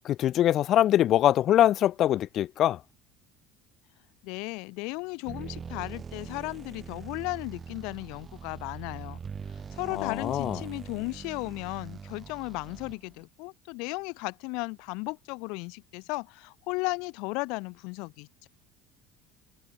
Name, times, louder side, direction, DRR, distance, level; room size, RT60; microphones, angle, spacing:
voice 1, 0.0-2.8 9.9-10.6, left 12 dB, 35° left, 0.7 m, -23 dB
voice 2, 4.2-9.2 9.5-18.5, left 28 dB, 60° left, 2.1 m, -35 dB
sound 1, 5.2-13.2, right 6 dB, 20° right, 3.5 m, -42 dB
cardioid pair, 180°, 0 cm